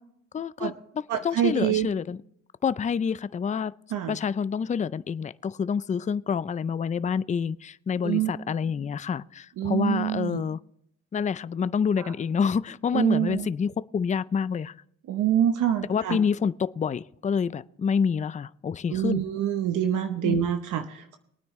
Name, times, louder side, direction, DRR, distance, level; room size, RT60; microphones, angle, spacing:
voice 1, 0.3-2.2 2.6-3.7 4.1-10.6 11.1-14.7 15.9-19.2 20.2-20.4, left 6 dB, 25° left, 0.4 m, -27 dB
voice 2, 1.1-1.9 3.9-4.2 8.0-8.3 9.6-10.4 12.0-12.1 12.9-13.5 15.1-16.2 18.9-21.2, right 10 dB, 80° right, 1.0 m, -26 dB
22.5 x 9.4 x 3.1 m
cardioid pair, 90°, 30 cm